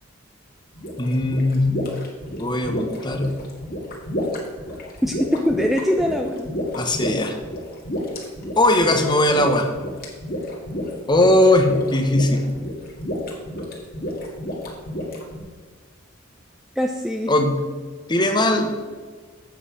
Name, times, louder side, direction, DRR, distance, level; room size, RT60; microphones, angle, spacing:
sound 1, 0.7-15.4, equal, 45° left, 1.9 m, -30 dB
voice 1, 1.0-1.7 2.4-3.3 6.7-7.4 8.6-9.7 11.1-12.4 17.3-17.6 18.1-18.7, left 1 dB, 20° left, 5 dB, 0.9 m, -19 dB
voice 2, 5.0-6.5 16.8-17.3, equal, ahead, 2 dB, 0.4 m, -22 dB
8.0 x 7.9 x 4.9 m, 1.5 s
head